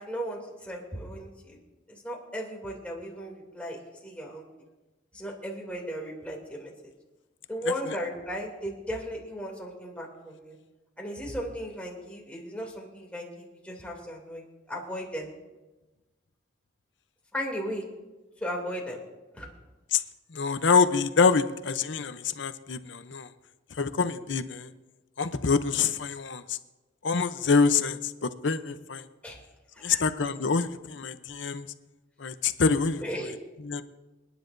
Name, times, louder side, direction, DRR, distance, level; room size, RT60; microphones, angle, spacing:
voice 1, 0.0-1.6 1.9-4.5 5.1-6.7 7.5-10.6 11.0-15.3 17.3-17.8 18.4-19.0 19.3-19.5 29.2-29.4 29.7-30.0 33.0-33.3, equal, 5° left, -2 dB, 2.6 m, -36 dB
voice 2, 20.3-23.3 23.8-24.7 25.2-26.6 27.0-29.0 29.8-31.7 32.2-33.0 33.6-33.8, left 5 dB, 60° left, 11 dB, 0.7 m, -26 dB
28.5 x 10.0 x 2.6 m, 1.1 s
head